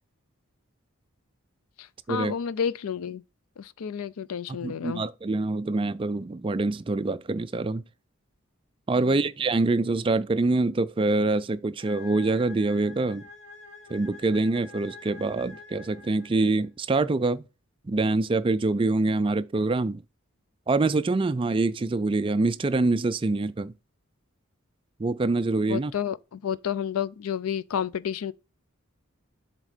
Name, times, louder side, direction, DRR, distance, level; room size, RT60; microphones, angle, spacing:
voice 1, 1.8-3.2 3.6-5.0 8.9-9.3 25.7-28.3, left 8 dB, 90° left, 0.4 m, -31 dB
voice 2, 4.5-7.8 8.9-13.2 13.9-17.4 17.9-20.0 20.7-23.7 25.0-25.9, right 3 dB, 25° right, 0.3 m, -25 dB
sound 1, 11.8-16.7, left 4 dB, 35° left, 1.6 m, -47 dB
7.4 x 3.6 x 5.0 m
head